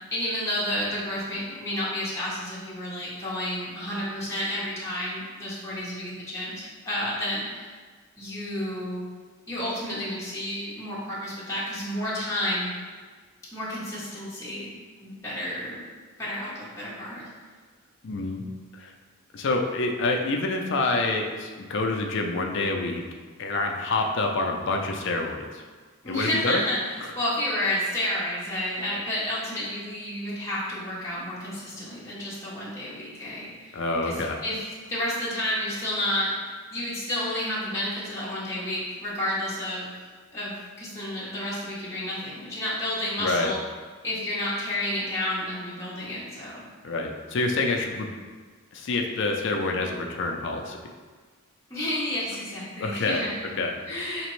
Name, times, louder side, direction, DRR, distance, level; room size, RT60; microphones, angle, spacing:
voice 1, 0.1-7.7 8.2-9.0 9.5-12.7 13.5-14.7 15.0-15.8 16.2-17.3 26.0-26.8 27.2-34.2 34.4-34.6 34.9-36.3 36.7-39.9 40.3-43.6 44.0-46.6 51.7-53.5 53.9-54.3, left 1 dB, 15° left, -9 dB, 0.8 m, -31 dB
voice 2, 18.0-18.4 18.7-18.9 19.3-23.0 23.4-25.6 26.0-26.6 33.7-34.4 43.2-43.5 46.8-48.1 48.7-50.8 52.8-53.2 53.6-53.7, left 2 dB, 55° left, 2 dB, 0.4 m, -27 dB
4.2 x 2.9 x 3.1 m, 1.5 s
head